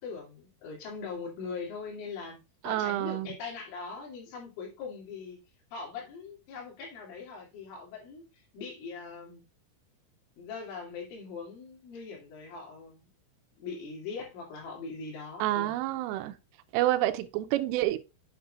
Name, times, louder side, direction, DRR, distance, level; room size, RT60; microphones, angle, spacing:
voice 1, 0.0-5.4 5.7-9.4 10.4-13.1 13.6-15.8, left 5 dB, 80° left, 5.2 m, -41 dB
voice 2, 2.6-3.3 15.4-16.3 16.7-18.0, right 15 dB, 85° right, 3.2 m, -28 dB
8.7 x 7.4 x 2.4 m
omnidirectional pair, 5.7 m